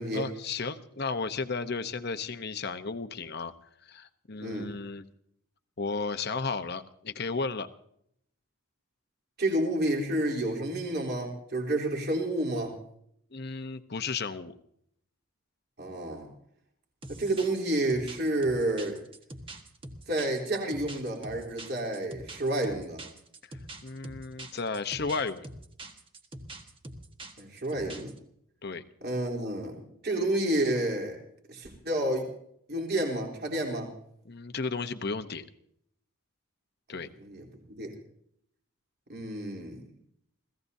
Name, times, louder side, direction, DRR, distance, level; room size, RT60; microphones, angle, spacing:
voice 1, 0.1-3.5 3.8-5.0 5.8-7.7 13.3-14.6 23.5-25.5 28.6-28.8 34.2-35.5 36.9-37.1, left 4 dB, 50° left, 9 dB, 0.9 m, -34 dB
voice 2, 4.4-4.7 9.4-12.8 15.8-16.3 17.1-19.0 20.1-23.0 27.4-28.1 29.0-31.2 31.5-32.3 32.7-33.9 37.2-37.9 39.1-39.8, right 1 dB, 50° right, 1 dB, 3.6 m, -30 dB
sound 1, 17.0-28.2, right 1 dB, 25° right, 1.4 m, -44 dB
29.0 x 16.5 x 2.7 m, 0.71 s
head